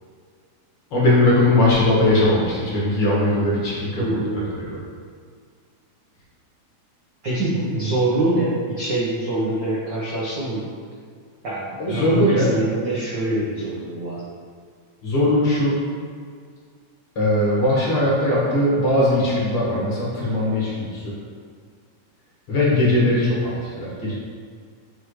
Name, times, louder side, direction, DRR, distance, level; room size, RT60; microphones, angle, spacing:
voice 1, 0.9-4.1 4.7-4.8 11.8-12.5 15.0-15.8 17.2-21.2 22.5-24.1, left 1 dB, 50° left, -7 dB, 2.2 m, -19 dB
voice 2, 4.0-4.5 7.2-10.7 11.4-14.2, right 2 dB, 65° right, -7 dB, 1.1 m, -24 dB
8.9 x 5.1 x 3.2 m, 2.1 s
omnidirectional pair, 3.5 m